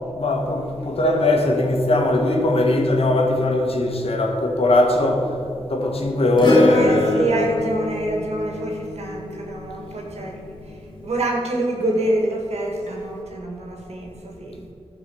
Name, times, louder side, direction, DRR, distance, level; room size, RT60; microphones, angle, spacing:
voice 1, 0.2-5.3 5.7-7.4 10.1-10.3, left 2 dB, 65° left, 1 dB, 1.7 m, -20 dB
Acoustic guitar / Strum, 6.4-11.0 12.9-13.0, left 2 dB, 45° left, 1.8 m, -25 dB
voice 2, 6.7-14.7, right 1 dB, 85° right, 0 dB, 1.9 m, -26 dB
14.0 x 4.7 x 7.1 m, 2.8 s
wide cardioid pair, 65°, 11 cm